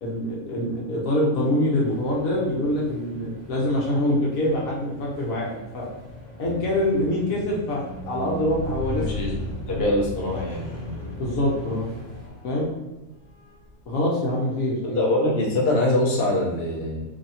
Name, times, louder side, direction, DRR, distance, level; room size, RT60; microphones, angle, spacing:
voice 1, 0.0-5.8 6.4-9.0 9.7-9.8 11.2-11.9 12.4-12.7 13.9-15.0, left 1 dB, 80° left, -4 dB, 1.2 m, -25 dB
sound 1, 1.8-12.3, left 2 dB, 30° left, 1.3 m, -45 dB
Squeak, 6.4-12.8 13.5-13.7, left 1 dB, ahead, 1.2 m, -35 dB
voice 2, 9.0-9.4 9.7-10.7 14.8-17.0, left 1 dB, 50° left, -3 dB, 1.1 m, -23 dB
3.0 x 2.7 x 4.0 m, 1.1 s
omnidirectional pair, 1.4 m